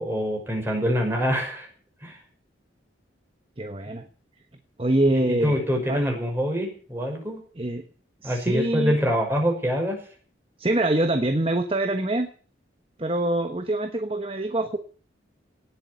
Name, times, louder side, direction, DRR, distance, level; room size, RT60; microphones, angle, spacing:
voice 1, 0.0-1.7 2.0-2.2 5.1-7.4 8.2-10.0, equal, 10° right, 1 dB, 6.0 m, -25 dB
voice 2, 3.6-4.0 4.8-5.5 5.9-6.1 7.6-7.8 8.2-8.9 10.6-12.3 13.0-14.8, right 1 dB, 30° right, 7 dB, 1.2 m, -24 dB
18.5 x 7.9 x 8.3 m, 0.43 s
head